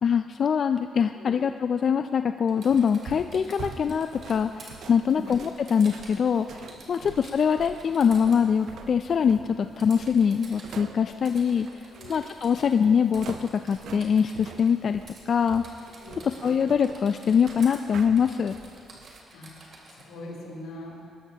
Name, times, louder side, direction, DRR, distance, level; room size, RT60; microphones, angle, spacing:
voice 1, 0.0-15.0 15.3-15.6 16.2-18.6, left 7 dB, 50° left, 9 dB, 0.3 m, -23 dB
Typing, 2.5-4.7 5.3-6.3 6.6-8.4 9.8-10.7 11.3-12.9 13.1-14.7 15.1-15.2 15.5-16.6 16.8-17.8 18.2-20.1, right 3 dB, 50° right, 2.9 m, -49 dB
sound 1, 2.7-19.2, right 6 dB, 70° right, 0.7 m, -45 dB
voice 2, 19.3-21.0, left 1 dB, 90° left, -3 dB, 3.2 m, -42 dB
20.5 x 13.0 x 2.9 m, 2.5 s
cardioid pair, 90°, 0 cm